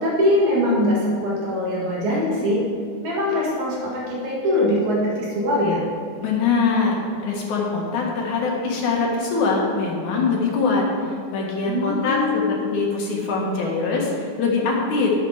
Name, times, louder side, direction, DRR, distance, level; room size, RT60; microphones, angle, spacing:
voice 1, 0.0-2.6 3.0-5.8 11.7-12.6, left 1 dB, 70° right, -4 dB, 3.0 m, -22 dB
voice 2, 6.2-10.9 11.3-15.1, left 4 dB, 70° left, -1 dB, 3.1 m, -23 dB
11.5 x 8.0 x 4.9 m, 2.3 s
omnidirectional pair, 3.6 m